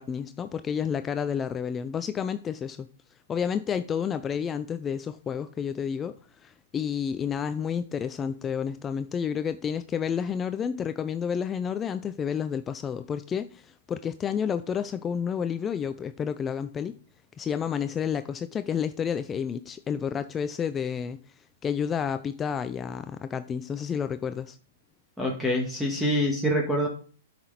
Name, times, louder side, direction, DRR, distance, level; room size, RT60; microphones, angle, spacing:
voice 1, 0.0-2.9 3.3-6.2 6.4-17.0 17.4-21.2 21.6-24.6, left 7 dB, 20° left, 0.4 m, -30 dB
voice 2, 25.2-26.9, equal, ahead, 1.7 m, -25 dB
9.2 x 6.0 x 4.1 m
hypercardioid pair, 125°, 0 cm